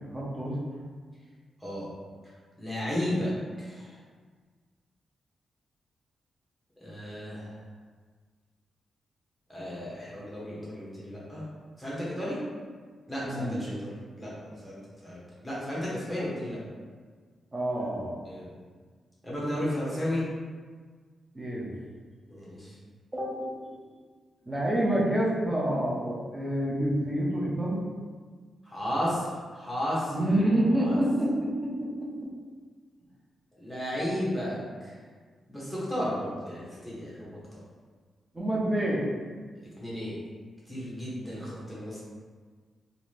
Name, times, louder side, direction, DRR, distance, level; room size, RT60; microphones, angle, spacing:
voice 1, 0.1-0.6 13.2-13.7 17.5-18.2 21.3-21.7 23.1-23.8 24.5-27.8 30.1-31.7 38.3-39.0, right 1 dB, 15° right, -5 dB, 0.5 m, -27 dB
voice 2, 2.6-3.3 3.6-4.0 6.8-7.5 9.5-11.5 11.8-12.4 13.1-14.8 15.0-16.6 18.2-18.5 19.2-20.2 22.3-22.8 28.7-30.2 30.8-31.0 33.6-34.9 35.5-37.4 39.8-40.2 40.7-42.0, equal, 5° left, -8 dB, 0.9 m, -33 dB
2.7 x 2.5 x 3.1 m, 1.5 s
wide cardioid pair, 170°, 0 cm